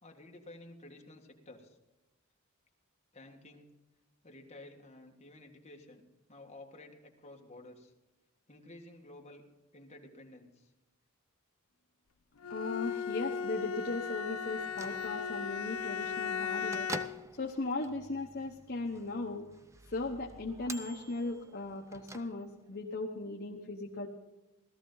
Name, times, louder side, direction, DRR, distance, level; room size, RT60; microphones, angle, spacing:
voice 1, 0.0-1.8 3.1-3.7 4.2-6.0 6.3-7.9 8.5-9.4 9.7-10.7, left 2 dB, 30° left, 1 dB, 1.7 m, -52 dB
Bowed string instrument, 12.4-17.3, left 6 dB, 80° left, 0.5 m, -36 dB
voice 2, 12.5-16.9 17.3-19.5 19.9-24.1, left 2 dB, 50° left, 1 dB, 1.0 m, -37 dB
Bell / Microwave oven, 14.5-22.8, right 2 dB, 15° right, 0.6 m, -49 dB
17.5 x 13.5 x 3.9 m, 1.1 s
head